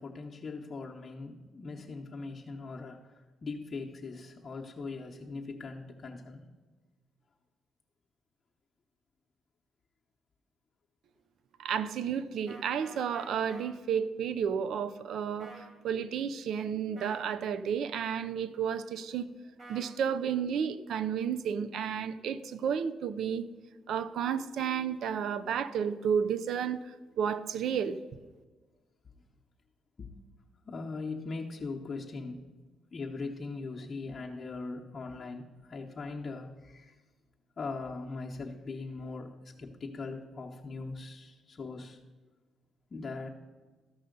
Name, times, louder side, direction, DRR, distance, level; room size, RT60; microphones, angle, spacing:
voice 1, 0.0-6.4 30.0-30.1 30.6-32.5 32.9-37.0 37.6-39.3 39.6-42.0 42.9-43.3, left 3 dB, 40° left, -1 dB, 0.9 m, -40 dB
voice 2, 11.6-19.3 19.7-23.5 23.9-26.8 27.2-28.0, right 7 dB, 70° right, 13 dB, 0.5 m, -32 dB
sound 1, 12.5-13.7 15.4-15.7 17.0-17.3 19.6-19.9, right 2 dB, 55° right, 3.8 m, -49 dB
13.5 x 5.5 x 5.2 m, 1.3 s
cardioid pair, 90°, 0 cm